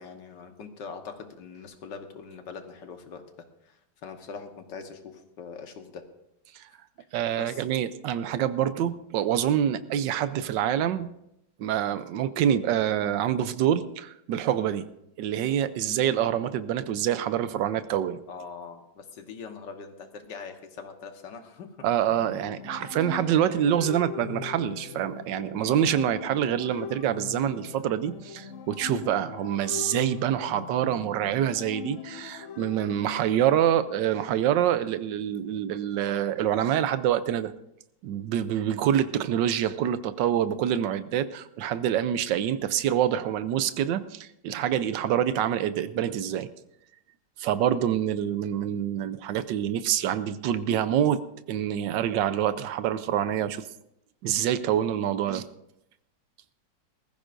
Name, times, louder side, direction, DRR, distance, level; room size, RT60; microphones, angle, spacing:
voice 1, 0.0-3.2 4.0-6.1 7.4-7.6 15.8-16.0 18.3-21.8 23.6-23.8 25.6-25.9 33.0-33.3 47.6-47.9, left 5 dB, 75° left, 6 dB, 1.9 m, -42 dB
voice 2, 7.1-11.1 11.6-14.8 15.2-18.2 21.8-37.5 38.0-46.5 47.4-51.2 51.5-53.6 54.2-55.5, right 10 dB, 85° right, 12 dB, 1.3 m, -26 dB
sound 1, 22.1-33.8, left 9 dB, 60° left, 0.9 m, -41 dB
20.0 x 14.5 x 2.6 m, 0.80 s
omnidirectional pair, 1.9 m